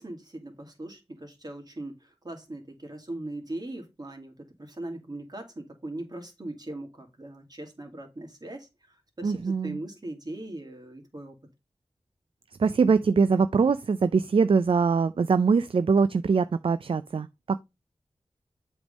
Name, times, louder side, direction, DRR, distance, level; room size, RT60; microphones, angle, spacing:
voice 1, 0.0-8.7 9.2-11.3, right 1 dB, 40° right, 2.2 m, -39 dB
voice 2, 9.2-9.8 12.6-17.6, right 5 dB, 60° right, 0.4 m, -23 dB
7.8 x 3.5 x 5.3 m
wide cardioid pair, 60°, 10 cm